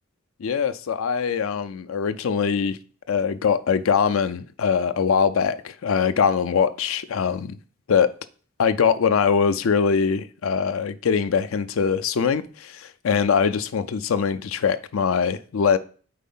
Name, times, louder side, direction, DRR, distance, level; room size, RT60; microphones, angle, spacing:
voice 1, 0.4-2.8 3.1-7.6 7.9-8.1 8.6-15.8, left 6 dB, 75° left, 0.4 m, -22 dB
4.7 x 4.2 x 5.4 m
head